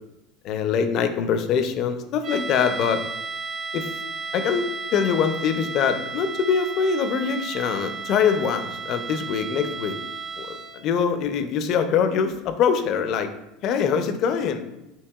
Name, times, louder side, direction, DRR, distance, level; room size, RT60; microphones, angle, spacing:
voice 1, 0.4-3.0 3.7-4.0 4.3-10.0 10.4-13.3 13.6-14.6, left 7 dB, 55° left, 8 dB, 0.4 m, -23 dB
sound 1, 2.2-10.9, right 4 dB, 40° right, 0.4 m, -34 dB
4.6 x 2.8 x 2.3 m, 0.93 s
supercardioid pair, 105°, 0 cm